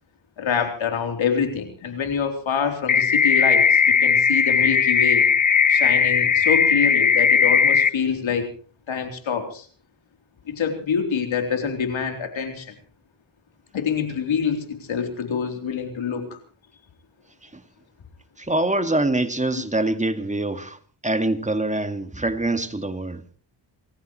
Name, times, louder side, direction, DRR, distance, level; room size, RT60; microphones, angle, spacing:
voice 1, 0.4-5.3 5.7-8.5 8.9-9.7 10.5-12.7 13.7-16.4, left 6 dB, 80° left, 3.6 m, -26 dB
sound 1, 2.9-7.9, left 6 dB, 40° left, 0.9 m, -18 dB
voice 2, 18.4-20.8 21.0-23.2, right 2 dB, 15° right, 2.0 m, -24 dB
29.0 x 15.0 x 3.1 m
cardioid pair, 65°, 46 cm